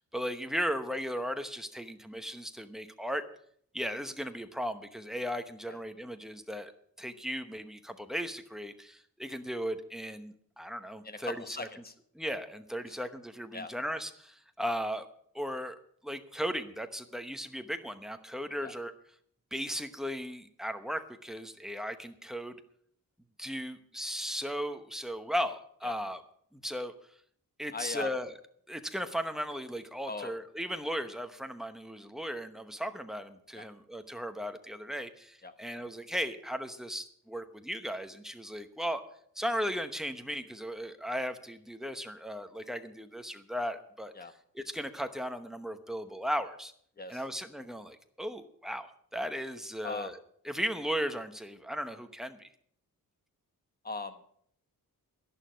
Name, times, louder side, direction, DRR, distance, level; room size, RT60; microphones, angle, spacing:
voice 1, 0.1-3.2 3.7-6.7 7.0-11.7 12.1-15.1 15.3-15.8 16.0-18.9 19.5-22.6 23.4-26.2 26.5-26.9 27.6-28.3 28.7-39.0 39.4-44.1 44.5-46.7 47.1-50.2 50.4-52.5, equal, ahead, 7 dB, 0.9 m, -36 dB
voice 2, 11.0-11.9 12.9-13.0 13.5-13.7 18.6-18.7 25.8-26.0 27.7-28.1 30.1-30.3 33.5-33.6 35.4-35.5 44.1-44.3 47.0-47.2 49.8-50.1 53.8-54.2, left 3 dB, 25° left, 9 dB, 1.1 m, -39 dB
11.5 x 11.5 x 6.2 m, 0.63 s
wide cardioid pair, 170°, 35 cm